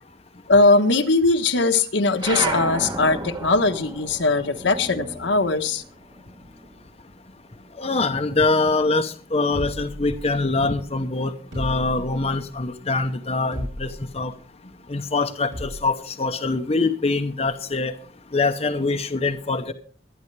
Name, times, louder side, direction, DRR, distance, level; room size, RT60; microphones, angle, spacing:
voice 1, 0.5-5.8, left 3 dB, 75° left, 1.2 m, -20 dB
sound 1, 2.2-7.0 7.4-8.8, right 2 dB, 20° right, 1.2 m, -33 dB
voice 2, 7.7-18.0 18.3-19.7, left 3 dB, 30° left, 0.8 m, -24 dB
sound 2, 9.5-10.6 11.5-12.4 13.5-14.2 15.5-16.0, equal, 80° right, 7.1 m, -34 dB
23.0 x 9.8 x 3.3 m
head